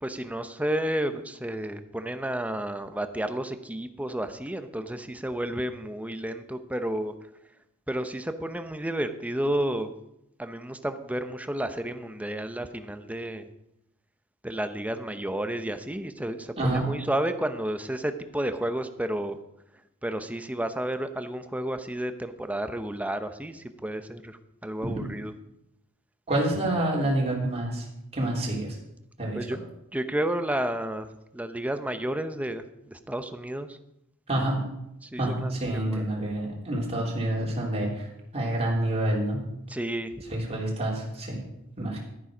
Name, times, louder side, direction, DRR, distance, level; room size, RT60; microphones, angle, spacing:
voice 1, 0.0-7.1 7.9-9.9 10.4-13.5 14.4-19.4 20.0-25.3 29.3-29.6 29.9-33.8 35.0-36.0 39.7-40.1, right 1 dB, 5° right, 9 dB, 0.7 m, -31 dB
voice 2, 26.3-27.8 28.1-28.8 29.2-29.4 34.3-34.6 35.2-38.1 38.3-39.5 40.3-41.4 41.8-42.0, right 1 dB, 30° right, -3 dB, 3.2 m, -27 dB
11.0 x 10.5 x 5.0 m, 0.83 s
head